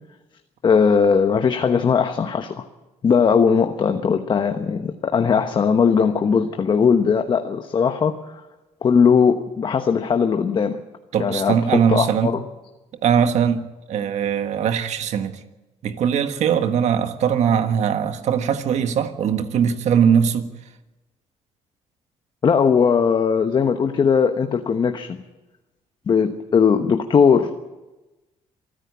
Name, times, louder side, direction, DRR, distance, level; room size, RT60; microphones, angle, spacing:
voice 1, 0.6-2.6 3.0-8.2 8.8-10.8 11.2-12.4 22.4-25.2 26.1-27.6, left 6 dB, 40° left, 1.1 m, -19 dB
voice 2, 11.1-12.3 13.0-15.3 15.8-20.5, right 8 dB, 65° right, 1.6 m, -20 dB
26.5 x 10.0 x 9.6 m
cardioid pair, 110°, 12 cm